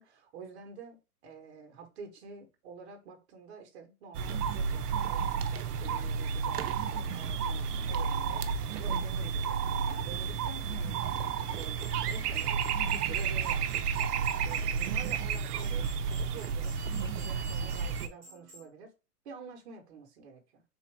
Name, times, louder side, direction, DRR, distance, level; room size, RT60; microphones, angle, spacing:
voice 1, 0.0-8.4 8.8-9.6 10.0-11.2 11.5-12.6 12.9-18.9 19.2-20.6, right 5 dB, 45° right, 1.2 m, -49 dB
sound 1, 4.1-18.1, right 6 dB, 85° right, 0.6 m, -31 dB
sound 2, 11.6-18.7, right 1 dB, 10° right, 0.5 m, -53 dB
3.5 x 2.8 x 3.2 m
hypercardioid pair, 160°, 46 cm